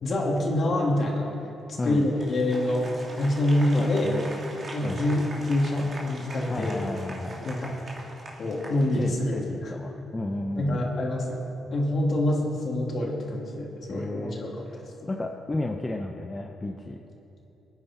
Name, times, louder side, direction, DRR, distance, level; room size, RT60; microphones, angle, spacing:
voice 1, 0.0-1.3 1.8-4.1 4.7-6.7 7.4-7.8 8.4-9.7 10.6-14.5 15.0-15.1, left 1 dB, 50° left, -2 dB, 3.0 m, -26 dB
Applause, 1.9-9.4, right 1 dB, 40° right, 2.6 m, -42 dB
voice 2, 3.7-4.2 4.8-5.0 6.5-7.5 8.9-10.9 13.9-14.8 15.1-17.0, left 2 dB, 20° left, 2 dB, 0.8 m, -33 dB
22.0 x 9.5 x 4.6 m, 3.0 s
cardioid pair, 85°, 0 cm